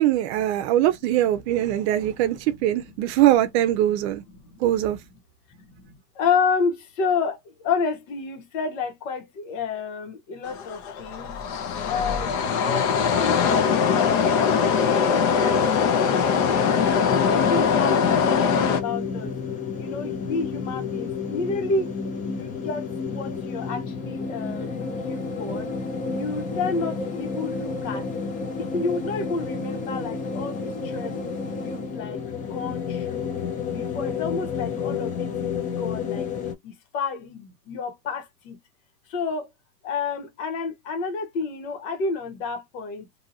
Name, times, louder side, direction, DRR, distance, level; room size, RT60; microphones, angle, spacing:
voice 1, 0.0-4.2 4.6-5.0, right 13 dB, 60° right, 0.6 m, -22 dB
voice 2, 4.3-4.8 5.6-11.4 11.8-14.6 14.8-16.9 17.3-19.3 19.8-21.9 22.3-25.7 26.1-28.0 28.6-31.2 31.6-33.3 33.7-36.3 36.6-38.6 39.1-39.5 39.8-43.1, left 4 dB, 85° left, 1.3 m, -30 dB
sound 1, 10.4-18.8, left 6 dB, 55° left, 0.8 m, -21 dB
sound 2, 16.8-36.5, left 5 dB, 20° left, 0.5 m, -31 dB
2.8 x 2.7 x 2.6 m
cardioid pair, 170°, 38 cm